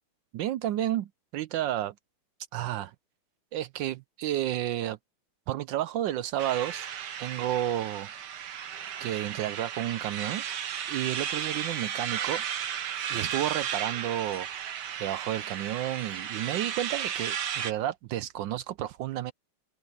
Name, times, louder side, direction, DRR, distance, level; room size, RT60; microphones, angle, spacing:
voice 1, 0.3-1.9 2.5-2.9 3.5-5.0 5.5-6.9 7.2-8.1 9.0-10.4 10.8-12.4 13.1-14.5 15.0-19.3, right 12 dB, 75° right, 1.1 m, -31 dB
sound 1, 6.4-17.7, right 9 dB, 55° right, 1.5 m, -34 dB
omnidirectional pair, 2.4 m